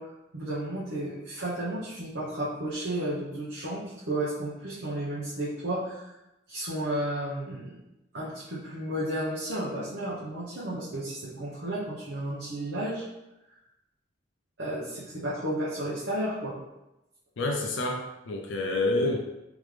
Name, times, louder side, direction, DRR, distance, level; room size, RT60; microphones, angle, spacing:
voice 1, 0.0-6.2 6.5-7.8 8.1-13.1 13.5-13.6 14.6-16.6, right 1 dB, 70° right, -8 dB, 0.9 m, -33 dB
voice 2, 17.4-19.2, left 2 dB, 75° left, 1 dB, 0.5 m, -28 dB
3.6 x 3.5 x 3.3 m, 0.94 s
head